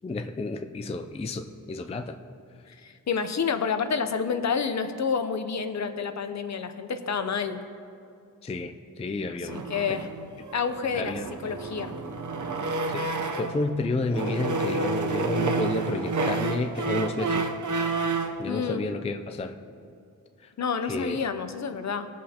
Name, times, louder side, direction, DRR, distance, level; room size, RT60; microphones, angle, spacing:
voice 1, 0.0-2.2 8.4-8.7 9.0-9.6 9.9-10.0 10.9-11.3 12.9-17.5 18.4-19.6 20.8-21.2, left 2 dB, 20° left, 7 dB, 0.3 m, -31 dB
voice 2, 2.7-7.6 9.4-10.1 10.5-11.2 11.4-11.9 18.5-18.8 20.6-22.1, left 6 dB, 55° left, 9 dB, 0.6 m, -29 dB
sound 1, 9.5-13.7 14.1-18.4, right 3 dB, 65° right, 0.7 m, -30 dB
20.5 x 7.5 x 2.8 m, 2.5 s
wide cardioid pair, 180°, 33 cm